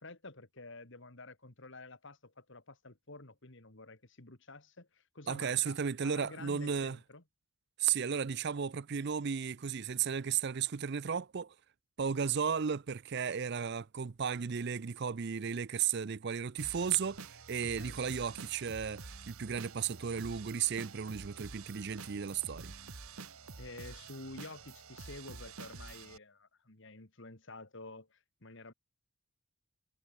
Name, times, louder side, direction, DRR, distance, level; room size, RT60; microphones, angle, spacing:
voice 1, 0.0-7.2 17.8-18.0 23.6-28.7, left 2 dB, 55° left, 2.3 m, -50 dB
voice 2, 5.3-7.0 7.8-11.5 12.0-22.8, right 7 dB, 50° right, 0.5 m, -34 dB
sound 1, 16.6-26.2, right 4 dB, 75° right, 1.8 m, -49 dB
head